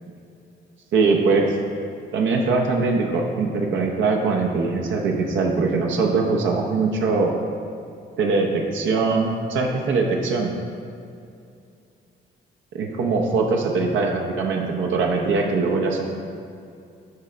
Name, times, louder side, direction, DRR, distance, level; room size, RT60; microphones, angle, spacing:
voice 1, 0.9-1.5 2.1-7.3 8.2-10.5 12.7-16.1, right 4 dB, 80° right, 1 dB, 0.7 m, -22 dB
9.4 x 3.3 x 4.9 m, 2.5 s
cardioid pair, 100°, 20 cm